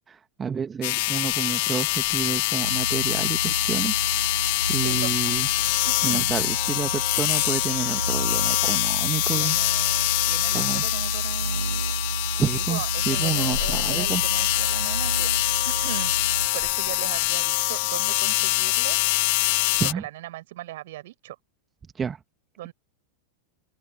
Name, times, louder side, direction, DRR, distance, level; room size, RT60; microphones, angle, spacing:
voice 1, 0.1-3.9 4.3-5.5 6.0-9.6 10.5-10.9 12.4-14.2 19.8-20.0 21.9-22.2, right 6 dB, 20° right, 1.7 m, -30 dB
sound 1, 0.8-19.9, left 26 dB, 50° left, 2.0 m, -24 dB
sound 2, 2.6-16.5, right 3 dB, 80° right, 1.0 m, -31 dB
voice 2, 5.9-6.3 9.3-11.8 12.5-15.3 15.7-16.1 16.5-19.1 19.9-21.4 22.6-22.7, right 16 dB, 55° right, 5.3 m, -38 dB
open air
figure-of-eight pair, 90°, 0 cm